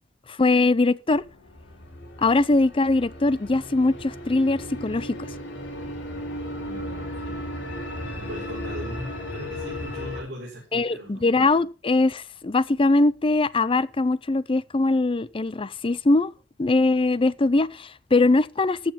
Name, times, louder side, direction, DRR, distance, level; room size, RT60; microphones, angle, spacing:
voice 1, 0.3-1.2 2.2-5.2 10.7-16.3 16.6-18.9, left 2 dB, 30° left, 0.5 m, -21 dB
sound 1, 1.1-10.2, left 1 dB, 65° left, 4.6 m, -35 dB
voice 2, 6.5-7.7 8.1-11.3, equal, 55° right, 5.0 m, -40 dB
14.5 x 7.8 x 5.7 m
head